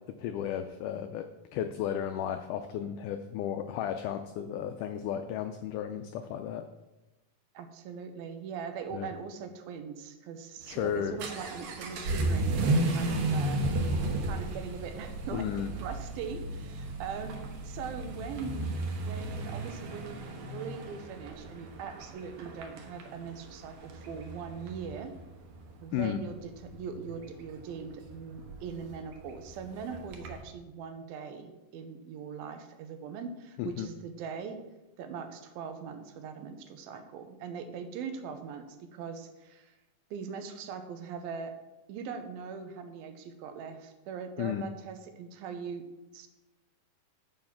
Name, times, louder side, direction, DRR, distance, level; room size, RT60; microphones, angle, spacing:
voice 1, 0.2-6.7 8.9-9.1 10.7-11.2 15.3-15.7 25.9-26.2 33.6-33.9 44.4-44.7, left 9 dB, 90° left, 7 dB, 1.8 m, -34 dB
voice 2, 7.5-13.6 14.2-25.2 25.8-34.6 35.0-39.7 40.1-41.5 41.9-45.9 46.1-46.3, right 6 dB, 85° right, 7 dB, 2.7 m, -41 dB
Vehicle / Accelerating revving vroom, 10.6-30.4, right 2 dB, 65° right, 2.5 m, -34 dB
7.6 x 6.8 x 5.8 m, 1.0 s
omnidirectional pair, 4.2 m